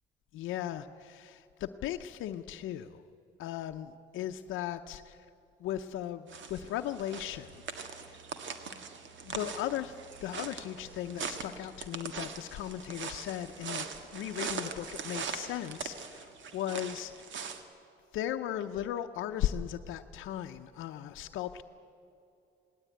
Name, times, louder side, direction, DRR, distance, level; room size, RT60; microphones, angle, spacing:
voice 1, 0.3-3.0 3.4-5.2 5.6-8.2 9.2-9.9 10.2-17.1 17.4-17.6 18.1-21.6, left 11 dB, 85° left, 6 dB, 0.6 m, -37 dB
sound 1, 6.3-17.6, right 5 dB, 70° right, 1.8 m, -41 dB
18.5 x 17.5 x 9.3 m, 2.7 s
cardioid pair, 90°, 20 cm